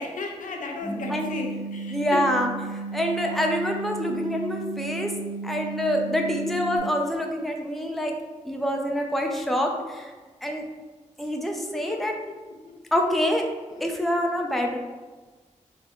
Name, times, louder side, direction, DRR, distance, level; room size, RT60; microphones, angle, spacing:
voice 1, 0.0-2.2 6.3-6.6 11.7-12.3 12.6-12.7 13.7-13.8, left 3 dB, 85° left, 2 dB, 0.5 m, -34 dB
sound 1, 0.8-6.8, right 4 dB, 25° right, 1.1 m, -34 dB
voice 2, 1.9-5.1 5.4-8.2 8.4-10.1 10.4-10.6 11.2-12.1 12.9-13.5 13.8-14.8, equal, ahead, 1 dB, 0.4 m, -26 dB
3.7 x 2.5 x 3.4 m, 1.3 s
wide cardioid pair, 100°, 13 cm